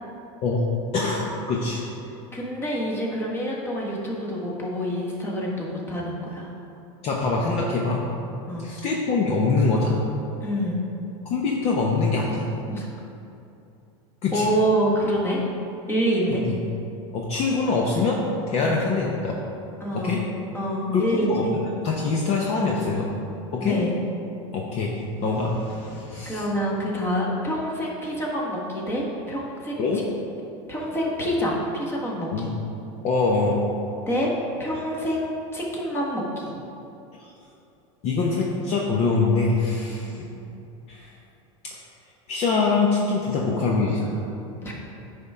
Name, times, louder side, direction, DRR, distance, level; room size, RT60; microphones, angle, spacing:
voice 1, 0.9-1.8 7.0-8.0 8.6-10.0 11.2-12.5 14.2-14.5 16.3-16.6 17.1-18.2 18.5-19.4 19.9-20.2 20.9-21.4 21.8-23.1 23.5-23.8 24.5-25.0 25.2-26.4 29.8-30.0 32.3-32.5 33.0-33.6 37.2-37.3 38.0-40.2 40.9-41.1 41.6-41.7 42.3-44.3, left 3 dB, 40° left, -2 dB, 0.8 m, -24 dB
voice 2, 2.3-6.5 8.5-8.7 10.4-10.8 12.7-12.9 14.3-15.5 15.9-16.4 18.6-18.9 19.8-20.2 20.5-21.5 23.6-24.0 26.2-29.8 30.7-32.5 34.1-34.3 34.6-36.5 40.0-40.3 44.6-44.7, equal, 15° left, -3 dB, 1.4 m, -27 dB
9.5 x 3.7 x 5.5 m, 2.8 s
supercardioid pair, 135°, 16 cm